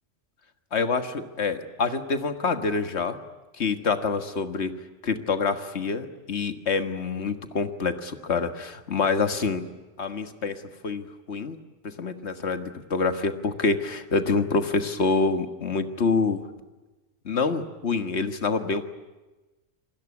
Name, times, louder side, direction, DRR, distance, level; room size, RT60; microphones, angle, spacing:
voice 1, 0.7-3.2 3.6-4.7 5.0-9.6 10.0-11.6 11.8-16.4 17.3-18.9, left 4 dB, 65° left, 9 dB, 1.9 m, -26 dB
28.0 x 20.0 x 9.6 m, 1.2 s
omnidirectional pair, 1.2 m